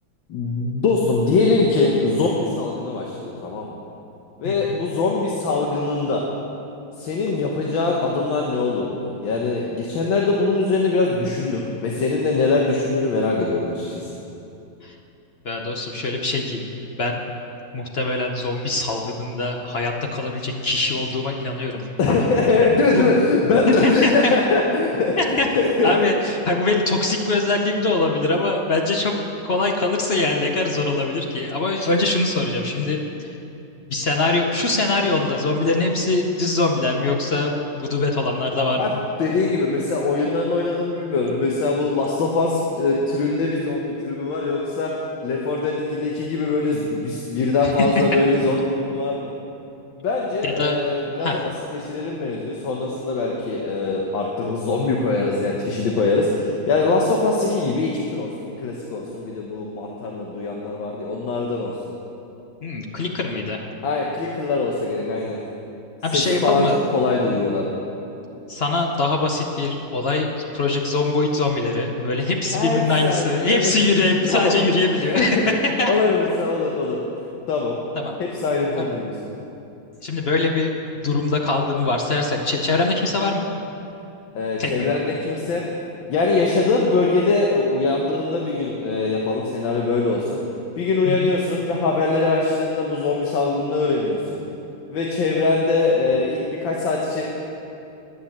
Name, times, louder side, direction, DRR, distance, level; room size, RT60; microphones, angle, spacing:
voice 1, 0.3-3.7 4.4-6.2 7.0-14.1 22.0-25.9 38.8-44.9 45.2-49.3 50.0-61.7 63.8-65.4 66.1-67.7 72.5-73.7 74.2-74.5 75.0-75.4 75.9-77.0 77.5-77.8 78.2-79.1 84.4-85.6 86.1-90.4 90.8-94.4 94.9-97.2, left 3 dB, 80° left, -1 dB, 1.7 m, -22 dB
voice 2, 4.4-4.8 14.8-15.0 15.4-16.7 17.0-17.2 17.7-21.9 22.9-23.0 23.7-24.3 25.2-25.5 25.8-29.1 29.4-33.3 33.9-38.9 47.6-47.9 50.4-50.9 51.2-51.4 62.6-63.6 66.0-66.8 68.5-75.5 75.8-75.9 78.0-78.2 78.8-78.9 80.0-83.5 84.6-84.9 91.1-91.3, left 3 dB, 60° left, 1 dB, 0.6 m, -22 dB
10.0 x 9.7 x 7.2 m, 2.8 s
omnidirectional pair, 2.1 m